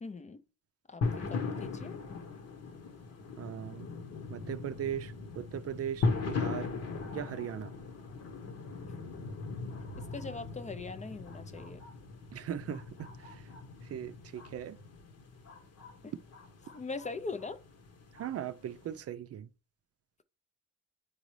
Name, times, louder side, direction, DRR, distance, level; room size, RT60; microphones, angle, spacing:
voice 1, 0.0-0.4 0.9-2.0 10.0-11.8 16.0-16.1 16.7-17.6, left 4 dB, 25° left, 0.5 m, -41 dB
sound 1, 1.0-19.0, left 4 dB, 55° left, 1.1 m, -39 dB
voice 2, 3.4-3.9 4.3-6.7 7.1-7.7 12.3-13.5 13.8-14.8 18.1-19.5, right 10 dB, 50° right, 0.5 m, -39 dB
8.8 x 3.9 x 3.2 m
cardioid pair, 90°, 30 cm